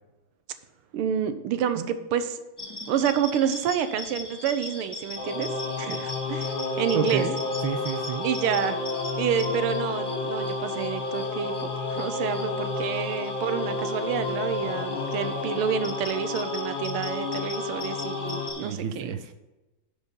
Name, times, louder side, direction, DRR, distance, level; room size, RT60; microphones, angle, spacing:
voice 1, 0.9-2.4 2.9-5.5 5.8-7.2 8.2-8.8 9.2-19.2, right 8 dB, 90° right, 10 dB, 1.6 m, -28 dB
sound 1, 2.6-18.7, left 2 dB, 20° left, 0.7 m, -40 dB
Singing / Musical instrument, 5.2-18.5, left 3 dB, 70° left, 2.0 m, -31 dB
voice 2, 6.9-7.4 7.6-8.3 18.6-19.3, right 8 dB, 70° right, 7 dB, 1.4 m, -30 dB
11.0 x 5.2 x 5.4 m, 1.1 s
omnidirectional pair, 2.4 m